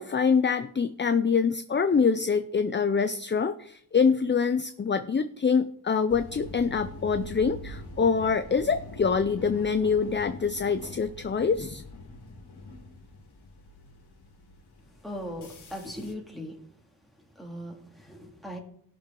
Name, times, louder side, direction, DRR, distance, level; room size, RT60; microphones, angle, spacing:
voice 1, 0.0-11.8, left 5 dB, 30° left, 10 dB, 0.4 m, -25 dB
sound 1, 6.1-16.1, left 2 dB, 85° left, 1.8 m, -44 dB
voice 2, 15.0-16.6 17.3-18.6, equal, ahead, -1 dB, 2.4 m, -39 dB
17.5 x 6.5 x 3.8 m, 0.65 s
wide cardioid pair, 100°, 39 cm